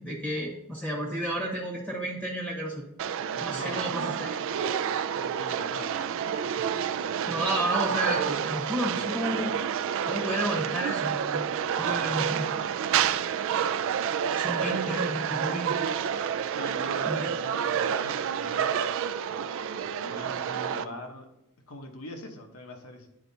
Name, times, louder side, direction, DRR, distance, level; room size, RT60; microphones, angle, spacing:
voice 1, 0.0-2.8 3.4-4.4 7.3-9.5 10.0-11.4 11.8-12.5 14.3-15.8 17.0-17.3, right 1 dB, 5° left, -1 dB, 1.0 m, -31 dB
sound 1, 3.0-20.8, right 8 dB, 65° right, 0.3 m, -29 dB
voice 2, 3.3-4.0 5.2-6.0 7.1-7.3 16.5-18.8 20.0-21.3 21.7-23.1, left 1 dB, 75° left, 3 dB, 1.0 m, -43 dB
10.5 x 4.3 x 2.7 m, 0.83 s
head